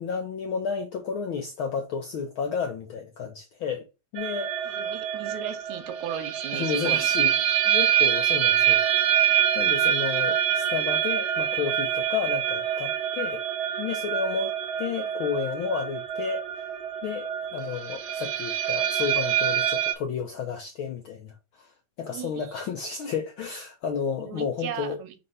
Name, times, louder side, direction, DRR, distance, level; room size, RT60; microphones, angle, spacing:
voice 1, 0.0-3.8 4.1-4.8 6.5-7.3 7.7-9.2 9.5-13.4 13.8-16.5 17.0-21.7 22.0-25.0, left 6 dB, 80° left, 1.1 m, -32 dB
sound 1, 4.2-19.9, right 10 dB, 65° right, 1.9 m, -25 dB
voice 2, 4.7-7.1 7.7-7.8 13.2-13.3 22.1-22.6 24.2-25.1, right 10 dB, 80° right, 2.1 m, -37 dB
4.3 x 4.0 x 5.5 m
omnidirectional pair, 3.3 m